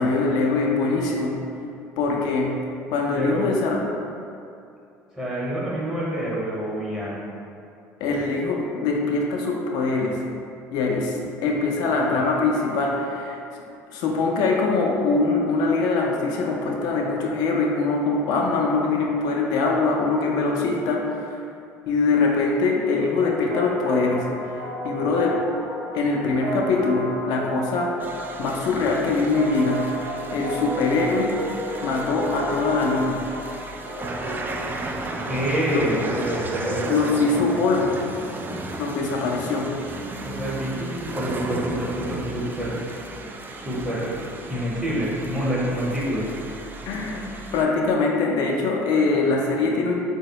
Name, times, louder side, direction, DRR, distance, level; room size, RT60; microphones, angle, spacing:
voice 1, 0.0-1.4 2.0-2.6 2.9-3.8 8.0-10.2 10.7-13.4 13.9-21.4 21.9-24.3 24.5-25.4 25.9-28.0 28.4-31.4 31.8-33.2 35.7-35.9 36.9-38.0 38.8-39.7 46.9-49.9, left 3 dB, 70° left, -1 dB, 0.4 m, -23 dB
voice 2, 5.1-7.2 35.3-37.0 40.2-42.8 43.5-44.2 44.5-46.2, right 1 dB, 10° right, -7 dB, 0.9 m, -27 dB
sound 1, 23.0-34.6, right 1 dB, 90° right, 0.7 m, -33 dB
sound 2, 28.0-47.6, right 2 dB, 25° right, 0.3 m, -35 dB
3.9 x 2.1 x 2.7 m, 2.6 s
supercardioid pair, 80°, 7 cm